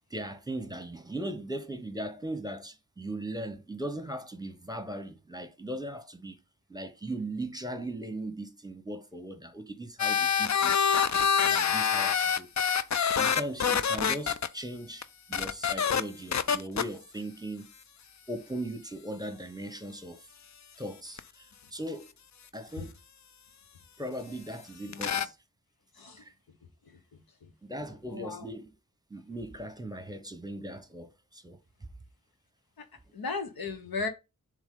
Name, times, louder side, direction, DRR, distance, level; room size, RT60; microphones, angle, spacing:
voice 1, 0.1-6.4 6.7-10.9 11.4-12.5 13.1-17.7 18.3-20.2 20.8-22.1 22.5-22.9 24.0-25.3 26.2-26.3 27.6-28.7 29.1-31.6, right 1 dB, 10° right, 1.1 m, -38 dB
sound 1, 10.0-14.5 15.0-15.1 15.3-16.0 16.3-16.8 21.2-21.3 24.9-25.3, left 7 dB, 55° left, 0.5 m, -26 dB
voice 2, 24.9-25.2 26.0-26.2 26.9-27.5 28.1-28.5 33.1-34.1, left 4 dB, 90° left, 1.2 m, -37 dB
7.2 x 3.5 x 3.8 m
wide cardioid pair, 65°, 35 cm